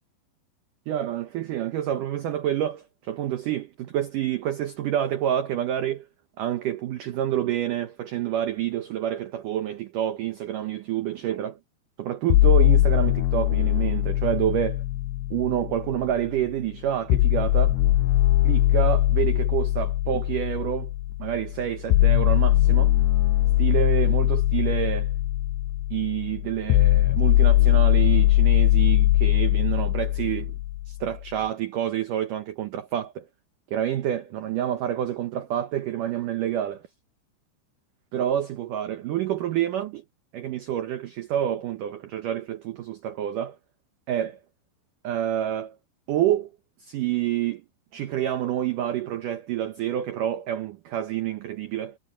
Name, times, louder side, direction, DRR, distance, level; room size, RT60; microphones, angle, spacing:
voice 1, 0.9-6.1 6.4-11.6 12.0-14.8 15.3-17.8 18.4-20.9 21.2-23.0 23.6-25.2 25.9-30.6 30.9-33.3 33.7-36.8 38.1-40.0 40.3-43.6 44.1-44.4 45.0-45.8 46.1-46.5 46.8-47.6 47.9-52.0, right 11 dB, 85° right, 1.8 m, -28 dB
sound 1, 12.3-16.3 17.1-31.1, left 15 dB, 80° left, 2.5 m, -21 dB
omnidirectional pair, 5.2 m